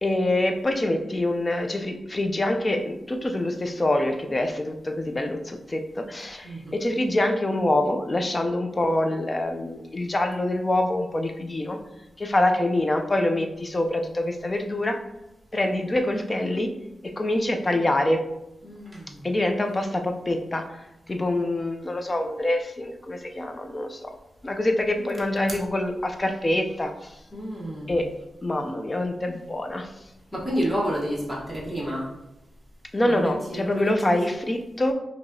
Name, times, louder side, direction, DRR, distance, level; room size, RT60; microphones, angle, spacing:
voice 1, 0.0-11.8 12.2-15.0 15.5-16.7 17.0-18.2 19.2-24.1 24.4-27.2 27.9-28.1 28.4-29.9 32.9-34.9, left 1 dB, 20° left, 5 dB, 0.4 m, -25 dB
voice 2, 6.4-6.7 18.6-19.3 25.0-25.1 27.3-28.0 30.3-32.1 33.0-34.4, equal, 5° left, -6 dB, 1.0 m, -30 dB
4.7 x 2.7 x 2.7 m, 0.92 s
wide cardioid pair, 140°, 0 cm